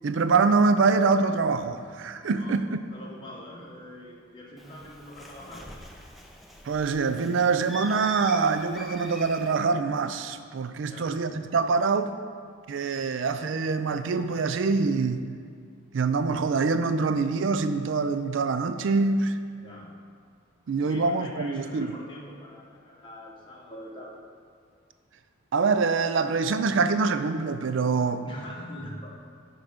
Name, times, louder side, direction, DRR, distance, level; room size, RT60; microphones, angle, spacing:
voice 1, 0.0-2.8 6.6-12.1 12.7-15.3 15.9-19.4 20.7-21.9 25.5-28.2, right 4 dB, 60° right, 0.4 m, -25 dB
voice 2, 2.9-5.8 10.8-11.1 19.6-19.9 20.8-24.2 28.2-29.2, left 1 dB, 25° left, 1.0 m, -43 dB
Bird, 4.6-9.6, equal, ahead, 0.5 m, -43 dB
10.0 x 3.7 x 5.0 m
head